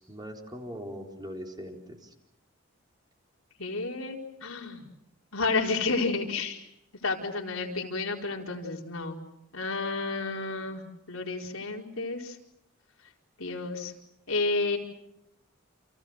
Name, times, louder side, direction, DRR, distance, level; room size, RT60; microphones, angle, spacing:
voice 1, 0.0-2.1, equal, 20° right, 2 dB, 4.4 m, -41 dB
voice 2, 3.6-4.9 5.3-6.6 7.0-9.2 9.5-12.4 13.4-13.9 14.3-14.8, left 3 dB, 90° left, 0 dB, 4.7 m, -31 dB
30.0 x 28.5 x 6.6 m, 0.80 s
head